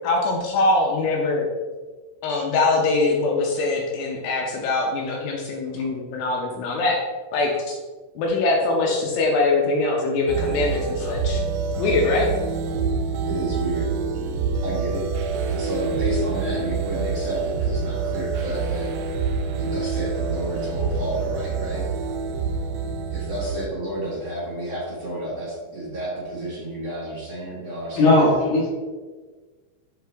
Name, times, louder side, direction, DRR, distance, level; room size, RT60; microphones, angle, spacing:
voice 1, 0.0-1.5 2.2-7.0 7.3-7.8 8.2-11.4 11.8-12.3, left 3 dB, 80° left, -1 dB, 2.5 m, -22 dB
sound 1, 10.3-23.7, right 5 dB, 90° right, 2.4 m, -26 dB
voice 2, 13.2-13.9 14.6-15.0 15.5-18.9 19.6-21.8 23.1-28.4, right 1 dB, 55° right, -7 dB, 1.8 m, -31 dB
voice 3, 28.0-28.7, left 2 dB, 60° left, -4 dB, 2.9 m, -17 dB
7.5 x 5.3 x 3.4 m, 1.4 s
omnidirectional pair, 5.5 m